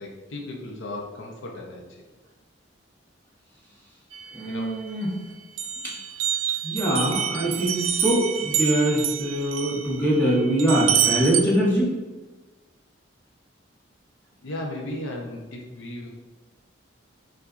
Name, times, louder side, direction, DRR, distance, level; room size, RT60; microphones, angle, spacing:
voice 1, 0.0-1.8 4.5-4.9 14.4-16.1, left 1 dB, 85° left, 0 dB, 0.6 m, -35 dB
sound 1, 4.1-5.2 5.6-11.4, right 9 dB, 85° right, 0.3 m, -27 dB
voice 2, 4.3-5.2 5.8-5.9 6.6-11.9, right 1 dB, 10° left, -6 dB, 1.1 m, -23 dB
5.6 x 2.5 x 2.5 m, 1.2 s
head